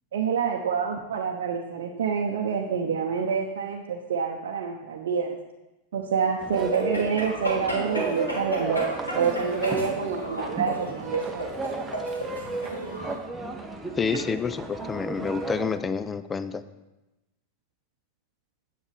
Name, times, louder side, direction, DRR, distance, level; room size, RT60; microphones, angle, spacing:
voice 1, 0.1-5.4 5.9-11.5, right 6 dB, 60° right, 0 dB, 0.7 m, -27 dB
sound 1, 6.4-15.8, right 3 dB, 10° right, 0.9 m, -34 dB
sound 2, 6.5-13.2, equal, 80° left, 2.7 m, -34 dB
voice 2, 14.0-16.6, left 5 dB, 15° left, 13 dB, 0.4 m, -28 dB
9.6 x 8.1 x 3.4 m, 1.0 s
figure-of-eight pair, 90°, 0 cm